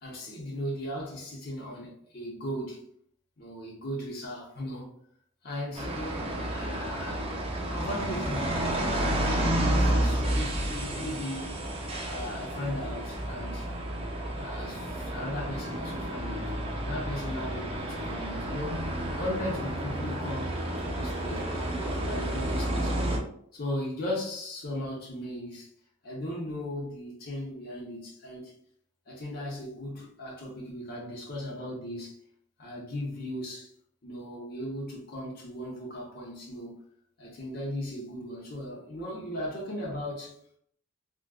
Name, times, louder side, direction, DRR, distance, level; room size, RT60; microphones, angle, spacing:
voice 1, 0.0-2.8 3.4-4.9 5.4-7.3 7.7-8.5 9.4-11.5 12.0-13.7 14.3-16.5 16.8-18.8 19.2-22.9 23.5-25.7 26.0-28.5 29.1-32.1 32.6-33.7 34.0-36.8 37.2-40.3, left 1 dB, 55° left, 0.9 m, -37 dB
sound 1, 5.8-23.2, right 1 dB, 30° right, 0.6 m, -31 dB
3.5 x 2.4 x 2.4 m
head